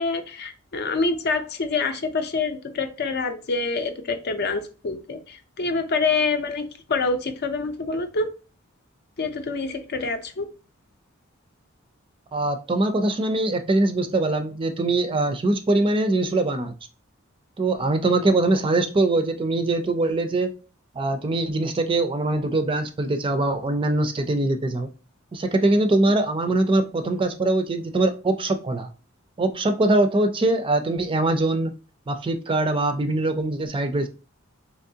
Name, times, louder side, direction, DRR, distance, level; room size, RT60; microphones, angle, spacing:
voice 1, 0.0-8.3 9.2-10.5, left 4 dB, 55° left, 0.5 m, -26 dB
voice 2, 12.3-16.7 17.6-20.5 21.0-24.9 25.3-28.9 29.4-31.7 32.1-34.1, right 2 dB, 25° right, 0.4 m, -22 dB
3.5 x 3.0 x 2.7 m
head